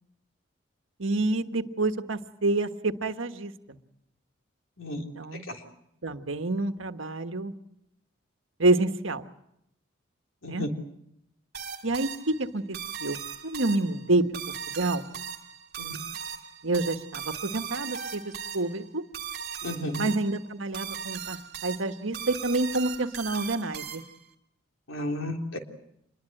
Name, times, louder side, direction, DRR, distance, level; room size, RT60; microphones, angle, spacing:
voice 1, 1.0-3.8 5.0-5.4 6.0-7.5 8.6-9.2 10.5-10.7 11.8-13.2 13.4-14.2 14.8-15.0 16.6-19.0 20.0-24.0, right 2 dB, 80° right, 8 dB, 1.4 m, -28 dB
sound 1, 11.5-24.3, right 8 dB, 50° right, 2.8 m, -38 dB
voice 2, 19.6-20.2 24.9-25.6, left 1 dB, 90° left, 3 dB, 3.6 m, -33 dB
26.5 x 22.0 x 7.9 m, 0.78 s
head